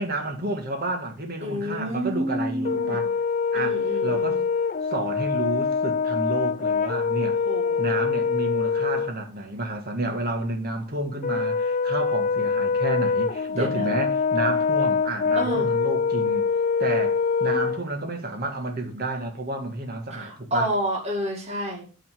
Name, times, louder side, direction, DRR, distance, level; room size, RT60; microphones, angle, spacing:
voice 1, 0.0-3.1 3.5-4.4 4.9-7.4 7.8-16.4 16.8-20.7, right 2 dB, 45° right, 1.7 m, -30 dB
voice 2, 1.4-3.0 3.5-4.4 7.4-7.8 13.5-14.0 15.4-15.7 20.1-21.8, equal, 30° right, 2.1 m, -29 dB
Brass instrument, 2.6-9.1 11.2-17.8, left 5 dB, 40° left, 0.4 m, -24 dB
9.2 x 3.9 x 6.2 m
head